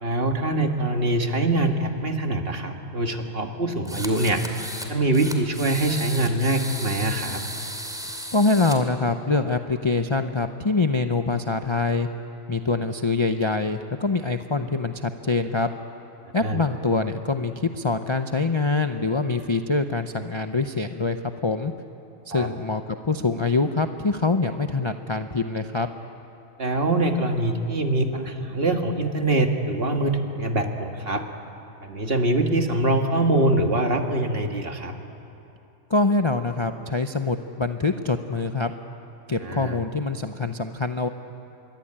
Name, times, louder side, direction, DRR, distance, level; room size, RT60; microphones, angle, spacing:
voice 1, 0.0-4.4 4.9-7.4 16.4-16.6 22.3-22.5 26.6-31.2 31.8-34.9 39.4-39.8, right 2 dB, 45° right, 4 dB, 1.9 m, -24 dB
sound 1, 3.8-4.9 5.1-8.8, equal, 5° right, 2.5 m, -35 dB
voice 2, 8.3-12.1 12.5-15.7 16.3-21.7 22.3-25.9 35.9-38.7 39.3-41.1, left 3 dB, 30° left, 6 dB, 0.6 m, -24 dB
25.5 x 22.5 x 8.8 m, 2.9 s
omnidirectional pair, 1.4 m